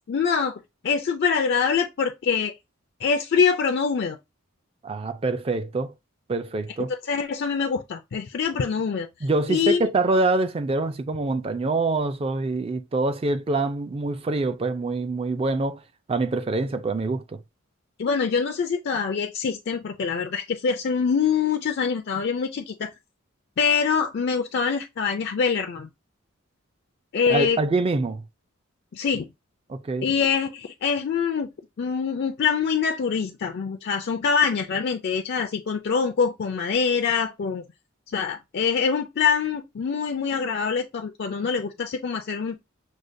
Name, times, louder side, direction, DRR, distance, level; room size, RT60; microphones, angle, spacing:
voice 1, 0.1-2.5 3.0-4.2 7.0-9.1 9.5-9.9 18.0-22.9 23.6-25.9 27.1-27.6 28.9-29.3 30.0-31.5 31.8-37.6 38.1-42.6, left 6 dB, 50° left, 0.4 m, -24 dB
voice 2, 4.8-5.9 6.3-6.9 9.2-15.8 16.1-17.4 27.3-28.2 29.7-30.1, right 3 dB, 30° right, 0.3 m, -25 dB
6.3 x 2.2 x 2.6 m
head